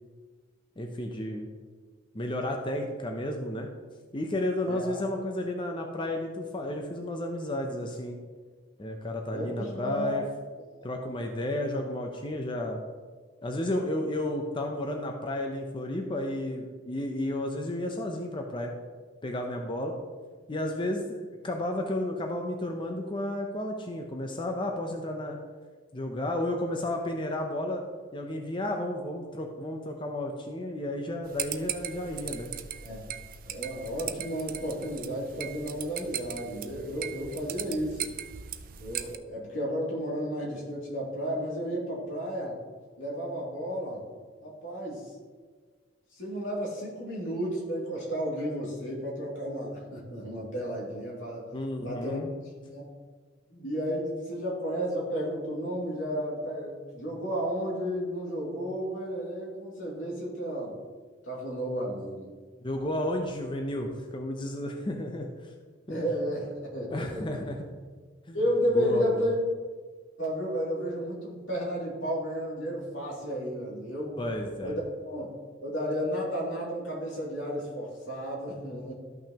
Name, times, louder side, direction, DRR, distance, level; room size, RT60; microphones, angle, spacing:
voice 1, 0.8-1.5 2.1-3.7 4.1-8.2 8.8-10.2 10.8-12.8 13.4-18.7 19.2-19.9 20.5-25.4 25.9-27.8 28.1-32.5 51.5-52.3 62.6-65.5 65.9-66.1 66.9-67.6 68.3-68.4 68.7-69.3 74.2-74.8, left 1 dB, 25° left, 2 dB, 0.6 m, -32 dB
voice 2, 4.6-5.0 9.3-10.2 32.8-33.0 33.4-38.0 38.8-42.6 43.0-44.0 44.4-45.0 46.2-51.5 51.8-52.2 52.6-52.8 53.5-60.7 61.2-62.3 65.9-67.2 68.3-69.3 70.2-74.3 74.6-75.3 75.6-78.9, equal, 80° left, -4 dB, 2.7 m, -32 dB
sound 1, 31.2-39.2, right 10 dB, 45° right, 0.4 m, -38 dB
13.0 x 5.9 x 2.9 m, 1.5 s
head